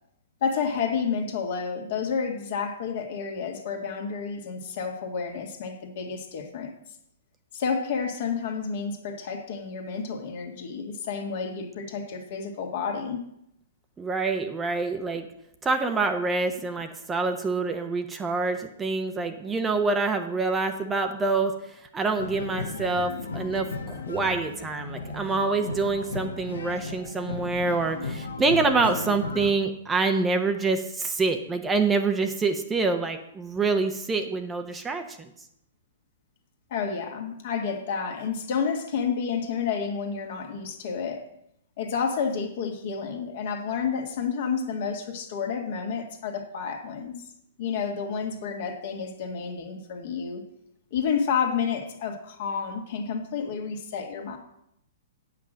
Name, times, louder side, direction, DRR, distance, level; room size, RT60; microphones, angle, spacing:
voice 1, 0.4-6.7 7.5-13.2 14.8-15.0 36.7-41.3 41.8-47.2 47.6-50.4 50.9-54.4, left 6 dB, 55° left, 3 dB, 1.8 m, -30 dB
voice 2, 14.0-15.3 15.6-21.5 21.9-35.0, right 3 dB, 15° right, 6 dB, 0.8 m, -26 dB
sound 1, 22.2-29.5, left 3 dB, 75° left, 1.1 m, -35 dB
8.6 x 5.8 x 6.3 m, 0.77 s
figure-of-eight pair, 115°, 0 cm